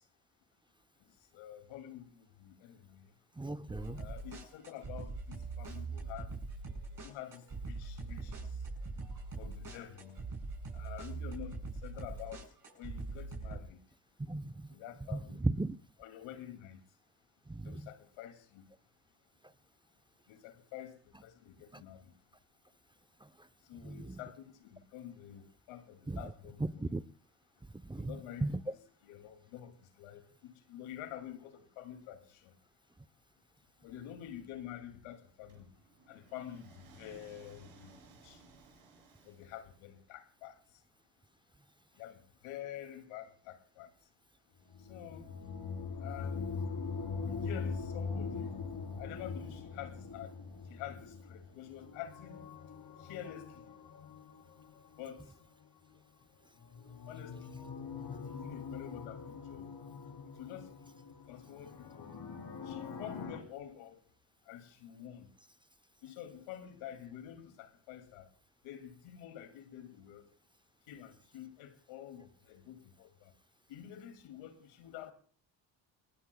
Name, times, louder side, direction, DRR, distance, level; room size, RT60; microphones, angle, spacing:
voice 1, 1.3-3.1 4.0-6.3 7.0-8.5 9.4-10.2 10.7-12.4 12.8-13.8 14.7-15.5 16.0-16.8 17.6-18.6 20.3-20.9 21.2-22.1 23.7-26.9 28.0-32.5 33.8-35.7 36.1-36.7 37.0-37.9 38.2-38.4 39.2-40.5 42.0-43.9 44.9-45.3 46.0-46.5 47.2-48.5 49.0-50.3 50.7-52.4 53.0-53.6 55.0-55.2 57.1-57.6 58.3-59.7 60.4-60.7 61.3-62.1 62.7-64.0 64.5-65.3 66.0-68.3 68.6-70.2 70.9-73.3 73.7-75.1, left 11 dB, 85° left, 2.5 m, -48 dB
voice 2, 3.4-4.0 14.3-14.7 15.1-15.8 17.5-17.8 23.8-24.2 26.1-26.2 26.6-27.0 27.8-28.1 28.4-28.6, right 2 dB, 10° right, 0.7 m, -36 dB
sound 1, 3.7-13.6, right 3 dB, 40° right, 7.8 m, -42 dB
sound 2, 35.5-39.9, right 4 dB, 85° right, 7.3 m, -59 dB
sound 3, 44.7-55.4 56.6-63.4, left 5 dB, 50° left, 3.3 m, -42 dB
29.0 x 20.5 x 2.2 m
supercardioid pair, 65°, 48 cm